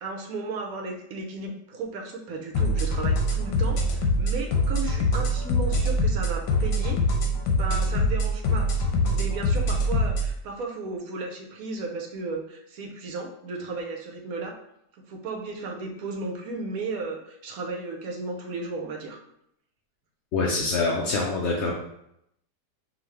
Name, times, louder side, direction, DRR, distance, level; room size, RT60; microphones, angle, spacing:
voice 1, 0.0-7.0 7.5-8.7 9.0-14.6 15.1-19.2, right 3 dB, 65° right, 2 dB, 1.1 m, -34 dB
sound 1, 2.5-10.3, equal, 80° left, 1.3 m, -24 dB
voice 2, 20.3-21.7, left 3 dB, 60° left, -3 dB, 0.7 m, -25 dB
5.1 x 2.8 x 3.1 m, 0.75 s
omnidirectional pair, 1.8 m